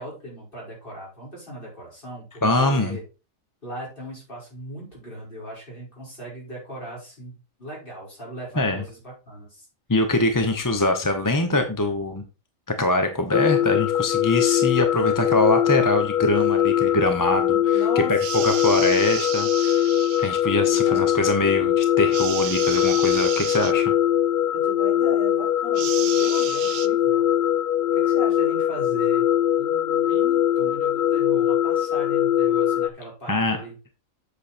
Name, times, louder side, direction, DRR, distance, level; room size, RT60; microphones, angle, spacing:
voice 1, 0.0-3.0 3.6-9.7 17.5-18.6 20.7-21.1 24.5-27.3 27.9-29.3 29.6-33.8, right 1 dB, 40° left, -5 dB, 5.6 m, -38 dB
voice 2, 2.4-3.0 8.6-8.8 9.9-12.2 12.8-17.5 18.1-19.8 20.2-23.9 33.3-33.6, left 2 dB, 15° left, 6 dB, 0.8 m, -23 dB
sound 1, 13.3-32.9, left 11 dB, 75° left, 0.4 m, -21 dB
sound 2, 18.2-20.4 22.1-23.7 25.7-26.9, right 10 dB, 60° right, 0.6 m, -32 dB
8.2 x 6.4 x 4.3 m, 0.32 s
omnidirectional pair, 1.4 m